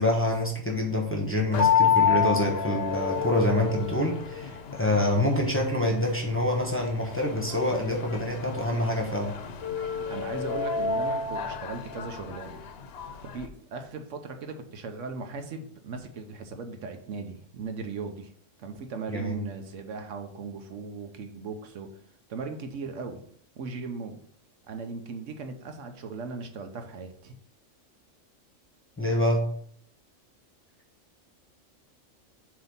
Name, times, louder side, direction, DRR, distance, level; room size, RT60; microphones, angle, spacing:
voice 1, 0.0-9.3 19.1-19.3 29.0-29.4, left 1 dB, 10° left, -1 dB, 1.1 m, -26 dB
sound 1, 1.5-13.5, left 6 dB, 60° left, 0.8 m, -29 dB
voice 2, 10.1-12.6 13.2-18.3 18.6-21.9 22.3-23.2 23.6-24.2 24.7-27.4, right 4 dB, 75° right, 6 dB, 1.1 m, -38 dB
7.4 x 2.9 x 5.5 m, 0.62 s
omnidirectional pair, 1.3 m